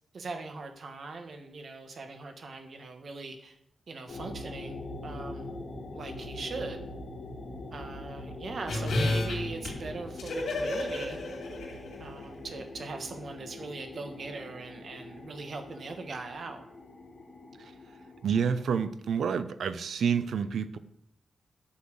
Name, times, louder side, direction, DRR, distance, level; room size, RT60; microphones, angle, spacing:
voice 1, 0.1-3.6 3.9-5.5 5.9-6.8 7.7-11.2 12.0-16.6, right 3 dB, 55° right, 6 dB, 1.6 m, -40 dB
sound 1, 4.1-18.9, left 2 dB, 55° left, 2.0 m, -43 dB
sound 2, 8.7-12.2 12.5-12.6, left 2 dB, 80° left, 3.2 m, -32 dB
voice 2, 18.2-20.8, right 7 dB, 80° right, 13 dB, 0.7 m, -28 dB
9.8 x 5.8 x 7.8 m, 0.77 s
wide cardioid pair, 110°, 0 cm